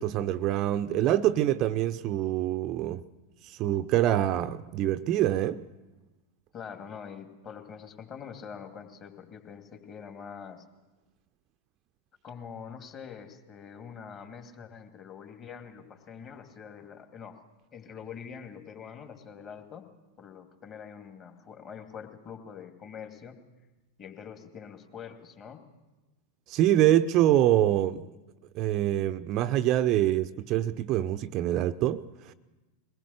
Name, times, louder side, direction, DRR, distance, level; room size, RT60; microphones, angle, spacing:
voice 1, 0.0-3.0 3.4-5.6 26.5-28.1 28.5-32.3, right 12 dB, 35° right, 0.6 m, -25 dB
voice 2, 6.5-10.6 12.2-17.4 17.7-19.9 20.2-23.4 24.0-25.6, left 7 dB, 30° left, 2.6 m, -44 dB
22.5 x 19.0 x 6.6 m
figure-of-eight pair, 90°, 0 cm